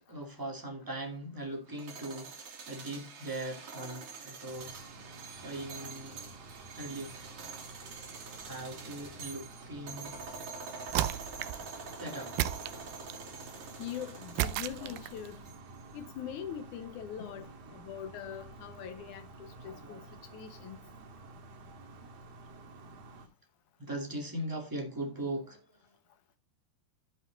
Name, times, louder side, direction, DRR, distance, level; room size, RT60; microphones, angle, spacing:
voice 1, 0.1-6.4 6.7-7.5 8.4-10.2 12.0-12.5 13.2-13.3 14.8-14.9 17.2-17.8 19.6-20.0 23.8-25.7, right 1 dB, 15° right, 0.7 m, -40 dB
sound 1, 1.7-15.8, right 4 dB, 40° right, 2.5 m, -46 dB
sound 2, 4.5-23.3, right 3 dB, 60° right, 3.6 m, -51 dB
sound 3, 10.9-11.7 12.4-13.3 14.4-15.3, right 13 dB, 80° right, 2.1 m, -33 dB
voice 2, 13.8-15.4 15.9-20.0 20.3-20.8, left 9 dB, 90° left, 1.7 m, -42 dB
14.5 x 5.4 x 3.8 m
omnidirectional pair, 4.8 m